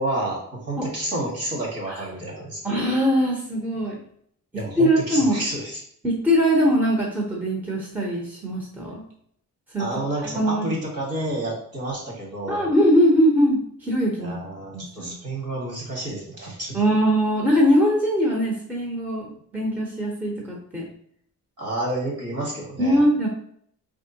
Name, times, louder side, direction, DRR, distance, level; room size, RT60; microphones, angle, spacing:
voice 1, 0.0-2.6 4.5-5.8 9.8-12.7 14.2-16.8 21.6-23.0, right 1 dB, 50° right, -2 dB, 1.9 m, -30 dB
voice 2, 2.6-4.0 4.8-5.4 6.0-9.0 9.7-9.9 10.2-10.6 12.5-14.4 14.7-15.1 16.7-20.9 22.8-23.3, equal, 5° right, -2 dB, 0.8 m, -21 dB
4.7 x 3.6 x 2.8 m, 0.65 s
wide cardioid pair, 150°, 32 cm